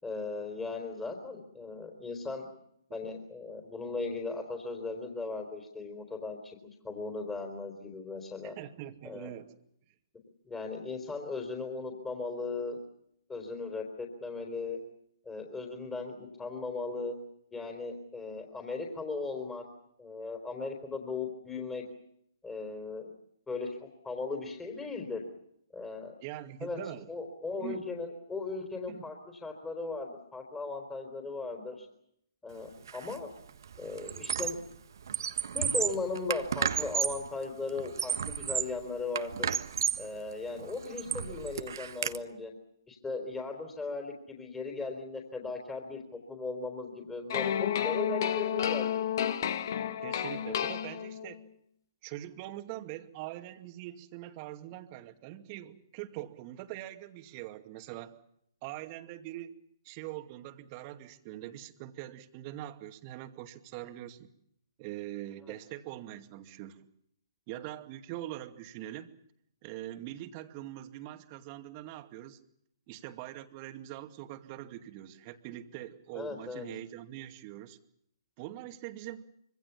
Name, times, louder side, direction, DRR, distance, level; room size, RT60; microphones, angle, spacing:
voice 1, 0.0-2.5 2.9-6.6 6.8-8.6 9.0-9.3 10.5-12.8 13.3-14.8 15.3-17.2 17.5-19.6 20.0-21.8 22.4-23.1 23.5-25.2 25.7-26.1 26.6-26.8 27.1-31.9 32.4-33.3 33.8-34.6 35.5-39.5 40.0-42.5 42.9-46.0 46.3-49.1 76.1-76.7, left 3 dB, 10° left, 2 dB, 3.9 m, -37 dB
voice 2, 8.4-9.5 26.2-27.1 27.6-27.8 28.9-29.1 50.0-51.4 52.0-58.2 58.6-59.6 59.8-64.3 64.8-66.8 67.5-69.1 69.6-72.4 72.9-77.8 78.4-79.2, right 14 dB, 30° right, 8 dB, 2.3 m, -43 dB
Squeak, 32.9-33.2 33.5-34.7 35.0-37.3 37.8-38.8 39.2-40.1 40.6-42.2, right 7 dB, 60° right, 1.5 m, -32 dB
sound 1, 47.3-51.4, left 9 dB, 50° left, 1.7 m, -31 dB
26.0 x 25.0 x 7.2 m, 0.74 s
figure-of-eight pair, 130°, 2 cm